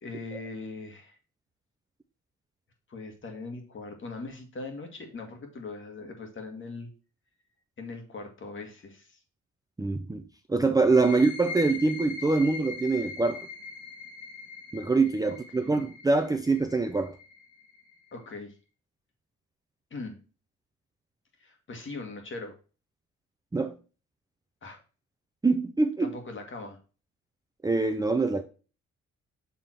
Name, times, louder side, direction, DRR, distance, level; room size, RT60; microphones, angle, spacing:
voice 1, 0.0-1.2 2.9-6.9 7.8-9.2 11.1-11.2 15.5-15.8 18.1-18.6 19.9-20.2 21.4-22.6 24.6-24.8 26.0-26.8, left 3 dB, 40° left, 1.9 m, -40 dB
voice 2, 9.8-10.2 10.5-13.5 14.7-17.2 23.5-23.7 25.4-26.1 27.6-28.4, right 3 dB, 10° right, 0.6 m, -24 dB
sound 1, 10.8-18.2, left 4 dB, 80° left, 1.9 m, -41 dB
7.0 x 3.7 x 4.4 m
cardioid pair, 90°, 30 cm